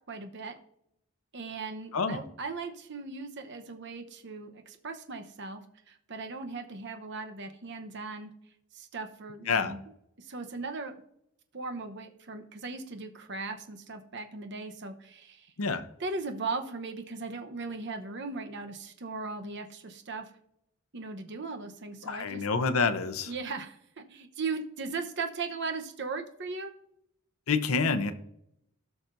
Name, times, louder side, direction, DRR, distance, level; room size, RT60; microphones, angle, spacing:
voice 1, 0.1-0.5 1.3-5.6 5.9-8.3 8.7-9.8 10.2-11.0 11.5-15.5 16.0-20.3 20.9-22.4 23.3-26.7, right 4 dB, 55° right, 6 dB, 0.9 m, -38 dB
voice 2, 22.0-23.3 27.5-28.1, left 4 dB, 90° left, 9 dB, 0.7 m, -27 dB
17.5 x 5.9 x 2.6 m, 0.77 s
head